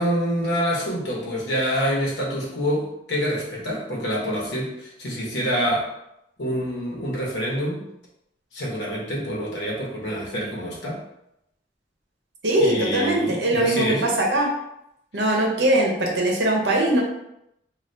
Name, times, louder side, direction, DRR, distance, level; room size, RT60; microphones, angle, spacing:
voice 1, 0.0-5.9 6.4-7.8 8.5-11.0 12.6-14.1, equal, 85° left, -4 dB, 1.0 m, -26 dB
voice 2, 12.4-14.5 15.1-17.0, right 1 dB, 75° right, -1 dB, 0.7 m, -21 dB
2.6 x 2.4 x 3.3 m, 0.81 s
head